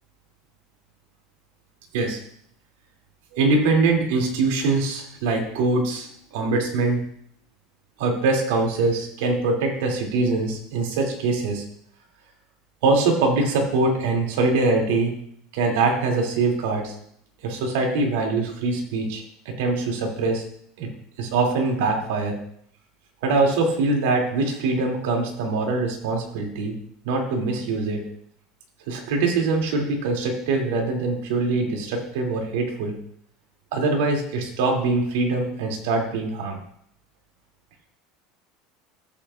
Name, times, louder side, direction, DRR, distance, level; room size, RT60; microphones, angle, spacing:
voice 1, 3.3-7.0 8.0-11.6 12.8-15.1 15.5-17.0 17.4-20.5 20.8-20.9 21.2-22.4 23.2-26.8 27.0-28.0 28.9-33.0 33.7-36.6, right 3 dB, 80° right, 1 dB, 2.6 m, -23 dB
14.0 x 8.4 x 2.5 m, 0.68 s
supercardioid pair, 125°, 0 cm